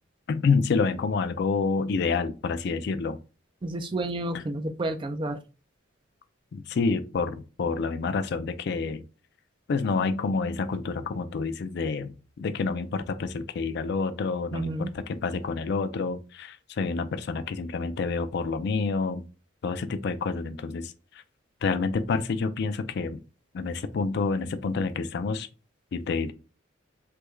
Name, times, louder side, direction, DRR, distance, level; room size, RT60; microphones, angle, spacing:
voice 1, 0.3-3.2 6.5-9.0 9.7-19.2 19.6-21.2 21.6-23.2 23.5-25.5 25.9-26.3, left 4 dB, 55° left, 0.3 m, -28 dB
voice 2, 3.6-5.4 14.5-14.9, right 1 dB, 25° right, 0.3 m, -30 dB
3.3 x 2.2 x 3.1 m
head